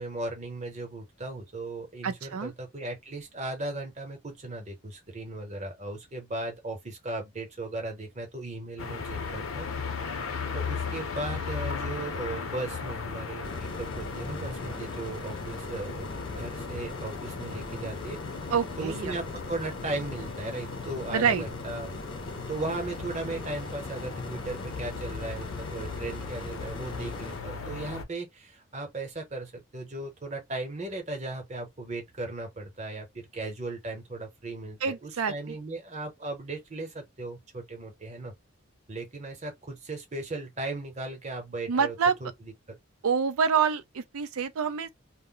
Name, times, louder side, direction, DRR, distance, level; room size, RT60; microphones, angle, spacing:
voice 1, 0.0-9.7 10.5-18.3 18.8-21.9 22.5-38.3 38.9-41.9 42.2-42.8, right 2 dB, 30° right, 0.8 m, -37 dB
voice 2, 2.0-2.5 18.5-19.1 21.1-21.4 34.8-35.6 41.7-42.2 43.0-44.9, right 6 dB, 85° right, 0.4 m, -27 dB
sound 1, 8.8-28.0, left 5 dB, 70° left, 0.6 m, -37 dB
sound 2, 13.4-27.4, left 1 dB, 20° left, 0.5 m, -42 dB
2.1 x 2.1 x 3.8 m
head